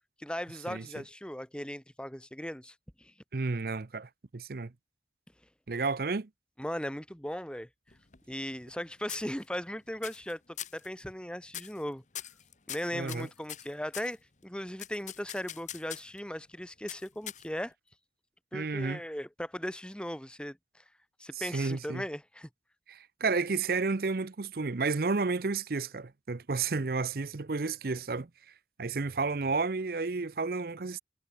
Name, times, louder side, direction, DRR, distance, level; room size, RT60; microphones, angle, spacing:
voice 1, 0.2-3.1 6.6-7.7 8.3-10.4 10.7-12.0 12.7-17.7 18.5-20.6 21.2-22.5, equal, 5° left, 1.8 m, -38 dB
voice 2, 3.3-4.7 5.7-6.3 12.9-13.3 18.5-19.0 21.4-22.0 22.9-28.3 28.8-31.0, right 4 dB, 55° right, 0.7 m, -31 dB
sound 1, 7.9-8.8 9.1-9.7 10.0-10.3 10.6-10.9 11.5-11.8 12.1-14.1 14.8-16.2 16.9-17.7, left 11 dB, 40° left, 1.2 m, -42 dB
head